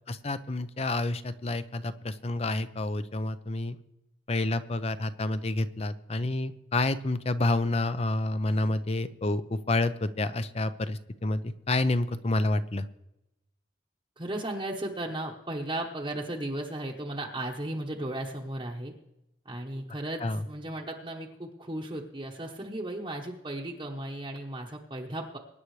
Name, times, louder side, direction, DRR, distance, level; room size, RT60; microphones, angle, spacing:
voice 1, 0.1-3.8 4.3-12.9 20.2-20.4, left 2 dB, 35° left, 12 dB, 0.6 m, -29 dB
voice 2, 14.2-18.9 19.4-25.4, right 1 dB, 25° right, -3 dB, 1.0 m, -35 dB
23.5 x 9.9 x 3.2 m, 0.89 s
head